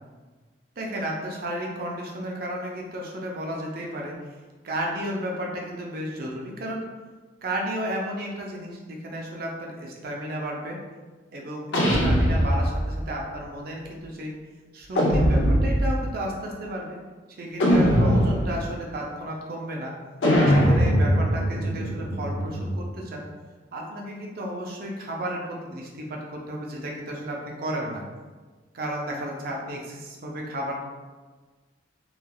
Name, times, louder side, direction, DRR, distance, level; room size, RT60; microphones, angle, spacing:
voice 1, 0.8-4.1 4.6-6.9 7.4-10.8 11.3-14.3 14.7-17.0 17.4-19.9 20.5-23.3 23.7-28.0 28.7-30.8, right 1 dB, 55° right, -1 dB, 0.5 m, -33 dB
sound 1, 11.7-13.0 14.9-16.0 17.6-18.7 20.2-22.9, equal, 80° left, 0.5 m, -21 dB
3.2 x 2.3 x 2.3 m, 1.3 s
head